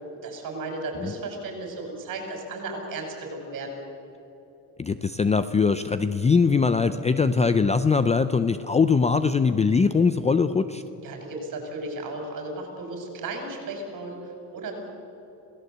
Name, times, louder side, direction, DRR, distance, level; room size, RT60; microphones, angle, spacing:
voice 1, 0.2-3.8 11.0-14.7, right 2 dB, 50° right, 3 dB, 6.1 m, -35 dB
voice 2, 4.8-10.8, left 5 dB, 15° left, 11 dB, 0.4 m, -21 dB
27.0 x 17.5 x 8.0 m, 3.0 s
cardioid pair, 165°, 40 cm